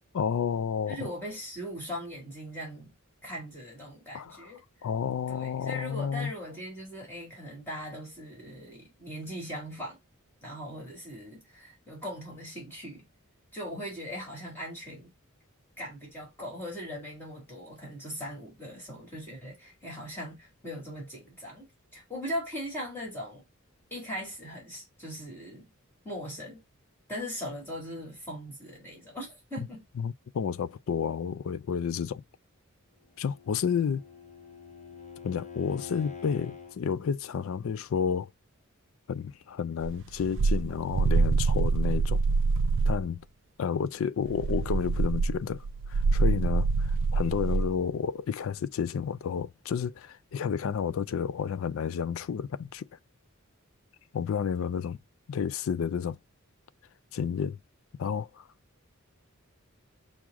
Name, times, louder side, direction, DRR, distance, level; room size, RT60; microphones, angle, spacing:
voice 1, 0.1-1.0 4.1-4.4 4.8-6.3 30.0-32.2 33.2-34.0 35.2-38.3 39.1-42.2 42.9-43.2 43.6-45.6 45.9-52.9 54.1-55.0 55.3-56.2 57.1-57.6 58.0-58.4, left 7 dB, 65° left, 0.4 m, -31 dB
voice 2, 0.9-3.0 3.2-4.6 5.3-10.0 10.4-13.1 13.5-15.1 15.8-23.4 23.9-25.7 26.0-26.6 27.1-29.8, equal, 10° left, 1.9 m, -39 dB
Bowed string instrument, 33.1-36.8, left 6 dB, 35° left, 0.7 m, -46 dB
sound 1, 39.8-43.1 44.3-47.7, right 4 dB, 60° right, 0.3 m, -26 dB
6.2 x 2.1 x 3.4 m
head